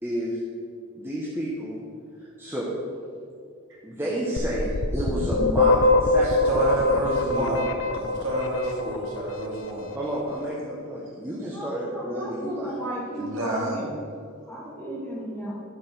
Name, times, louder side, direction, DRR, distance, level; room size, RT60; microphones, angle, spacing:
voice 1, 0.0-0.4 0.9-1.8 2.2-2.7 3.8-7.6 9.9-12.8, right 1 dB, 10° right, -7 dB, 1.1 m, -31 dB
sound 1, 4.4-9.2, left 3 dB, 65° left, 0.6 m, -23 dB
voice 2, 6.5-9.9 13.2-13.8, right 1 dB, 60° right, -4 dB, 2.5 m, -28 dB
voice 3, 11.5-13.9 14.5-15.5, right 1 dB, 10° left, -7 dB, 2.6 m, -34 dB
11.0 x 5.1 x 6.2 m, 2.3 s
head